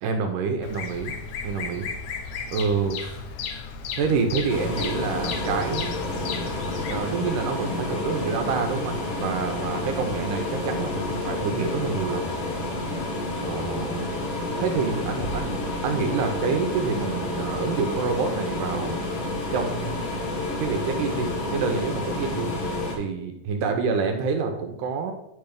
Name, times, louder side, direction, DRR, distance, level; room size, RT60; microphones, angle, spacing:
voice 1, 0.0-1.2 1.4-1.9 2.5-3.3 4.0-5.9 6.9-12.3 13.4-14.1 14.6-19.0 19.5-20.1 20.6-22.5 22.9-25.1, right 5 dB, 80° right, 5 dB, 2.2 m, -27 dB
Bird vocalization bird call bird song, 0.6-7.0, left 6 dB, 75° left, 2.0 m, -34 dB
sound 1, 4.5-23.0, left 2 dB, 55° left, 1.8 m, -29 dB
8.8 x 3.4 x 5.1 m, 0.83 s
omnidirectional pair, 3.9 m